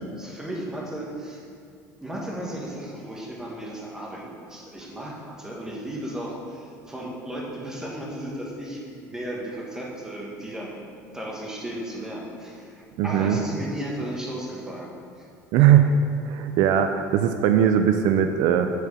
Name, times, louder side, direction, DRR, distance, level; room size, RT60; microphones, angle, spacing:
voice 1, 0.0-1.4 2.0-10.8 11.1-15.3, right 1 dB, 10° right, -3 dB, 1.4 m, -35 dB
voice 2, 13.0-13.4 15.5-15.9 16.3-18.7, right 9 dB, 65° right, 7 dB, 0.5 m, -19 dB
8.0 x 4.8 x 6.7 m, 2.3 s
cardioid pair, 145°, 7 cm